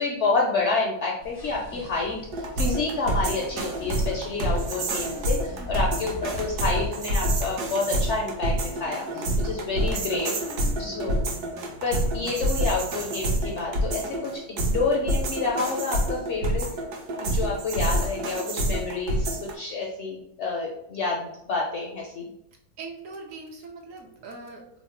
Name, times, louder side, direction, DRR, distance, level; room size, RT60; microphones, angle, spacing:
voice 1, 0.0-10.3 10.8-11.3 11.8-14.3 14.6-16.7 17.2-22.3, left 3 dB, 70° left, -1 dB, 0.7 m, -28 dB
sound 1, 1.2-6.9, left 2 dB, 30° left, 0.4 m, -40 dB
sound 2, 2.3-19.5, right 1 dB, 85° right, 1.2 m, -27 dB
sound 3, 2.9-14.4, equal, 35° right, 0.4 m, -46 dB
voice 2, 5.6-6.0 9.7-10.3 10.6-10.9 22.8-24.6, right 3 dB, 70° right, 1 dB, 0.9 m, -42 dB
3.1 x 2.1 x 4.2 m, 0.77 s
omnidirectional pair, 1.6 m